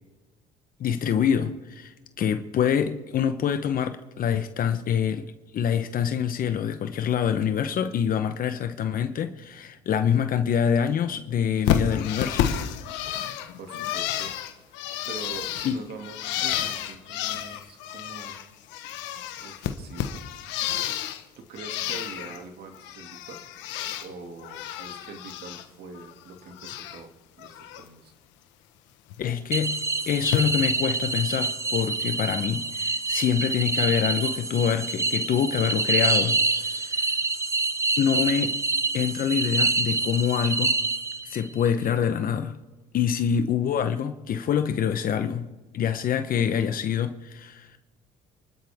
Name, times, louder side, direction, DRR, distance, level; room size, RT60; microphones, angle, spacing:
voice 1, 0.8-5.2 5.5-12.5 15.6-15.8 29.2-37.1 38.0-38.6 38.9-40.8 41.2-42.6 42.9-45.5 45.7-47.8, left 8 dB, 50° left, 1.0 m, -26 dB
Bird, 11.7-18.5 18.7-21.2 21.6-22.4 22.7-24.1 24.4-25.6 26.0-27.0 27.4-27.8 29.1-29.2 30.2-30.4, left 10 dB, 80° left, 1.4 m, -31 dB
voice 2, 13.6-18.4 19.4-20.2 21.4-23.4 24.0-28.1, right 4 dB, 60° right, 2.6 m, -43 dB
sound 1, 29.5-41.5, right 3 dB, 15° right, 0.9 m, -26 dB
28.5 x 12.5 x 3.7 m
supercardioid pair, 90°, 19 cm